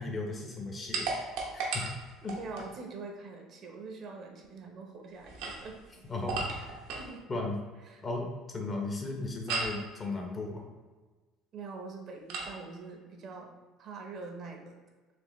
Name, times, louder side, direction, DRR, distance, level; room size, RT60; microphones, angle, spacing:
voice 1, 0.0-1.8 2.2-2.3 6.1-6.8 7.3-7.6 8.0-8.3 8.5-10.6, left 3 dB, 30° left, 1 dB, 0.8 m, -36 dB
sound 1, 0.9-2.7 5.2-7.1 9.5-9.9 12.3-12.6, right 3 dB, 80° right, 0.8 m, -35 dB
voice 2, 2.4-5.8 7.0-7.2 7.8-8.0 11.5-13.5 13.8-14.8, right 4 dB, 50° right, 2 dB, 0.7 m, -44 dB
4.4 x 2.8 x 3.0 m, 1.3 s
cardioid pair, 115°, 0 cm